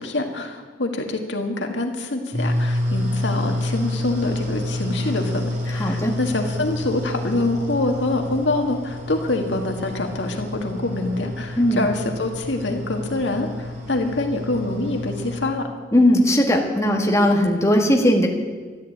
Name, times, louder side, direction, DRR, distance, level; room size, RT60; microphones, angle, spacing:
voice 1, 0.0-15.7, left 2 dB, 75° left, 3 dB, 2.0 m, -25 dB
sound 1, 2.3-15.4, left 1 dB, 45° right, 4.1 m, -29 dB
voice 2, 5.8-6.1 11.6-11.9 15.9-18.3, left 1 dB, 15° left, 0 dB, 1.8 m, -18 dB
14.0 x 11.0 x 8.7 m, 1.5 s
head